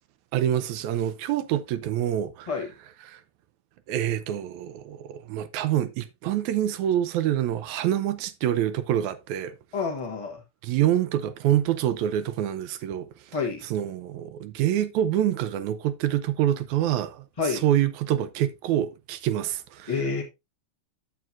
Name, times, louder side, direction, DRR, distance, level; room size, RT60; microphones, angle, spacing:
voice 1, 0.3-2.6 3.0-3.2 3.9-9.6 10.6-13.1 13.6-20.1, right 11 dB, 80° right, 2.0 m, -26 dB
voice 2, 9.7-10.4 13.3-13.6 17.4-17.6 19.9-20.2, left 5 dB, 55° left, 0.3 m, -28 dB
9.2 x 7.5 x 2.6 m
omnidirectional pair, 3.4 m